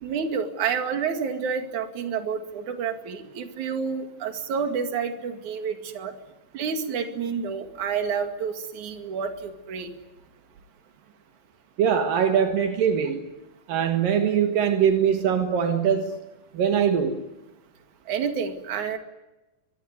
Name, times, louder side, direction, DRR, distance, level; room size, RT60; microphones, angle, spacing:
voice 1, 0.0-6.1 6.5-9.9 18.1-19.0, right 6 dB, 60° right, 3.5 m, -29 dB
voice 2, 11.8-13.3 13.7-16.2 16.5-17.2, right 8 dB, 75° right, 3.3 m, -22 dB
24.5 x 23.0 x 9.7 m
omnidirectional pair, 4.0 m